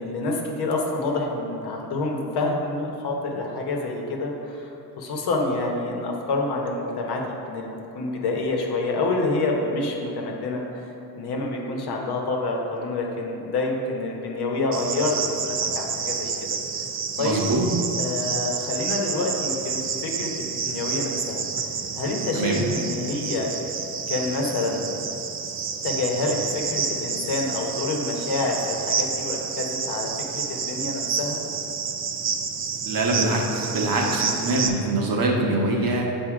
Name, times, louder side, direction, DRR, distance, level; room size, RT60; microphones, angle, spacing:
voice 1, 0.0-10.9 11.1-15.2 15.4-16.3 17.2-17.5 18.0-21.4 22.0-23.5 24.1-24.8 25.8-31.4, left 2 dB, 75° left, 0 dB, 1.0 m, -27 dB
Cricket, 14.7-34.7, right 6 dB, 35° right, 0.4 m, -29 dB
voice 2, 17.2-17.7 22.3-22.6 32.8-36.2, right 2 dB, 60° right, -1 dB, 1.1 m, -24 dB
7.1 x 2.7 x 4.8 m, 2.8 s
cardioid pair, 85°, 39 cm